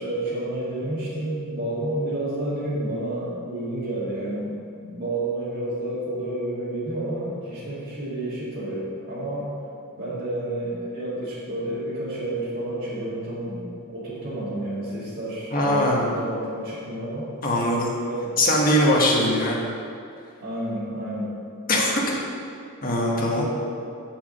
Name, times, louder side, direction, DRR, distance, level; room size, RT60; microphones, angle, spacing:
voice 1, 0.0-9.5 10.0-17.3 18.0-18.4 20.4-21.3 23.1-23.5, right 1 dB, 45° right, -11 dB, 2.2 m, -30 dB
voice 2, 15.5-16.1 17.4-17.9 18.4-19.6 21.7-21.9 22.8-23.4, left 1 dB, 40° left, -2 dB, 1.4 m, -21 dB
7.0 x 5.0 x 6.6 m, 2.4 s
head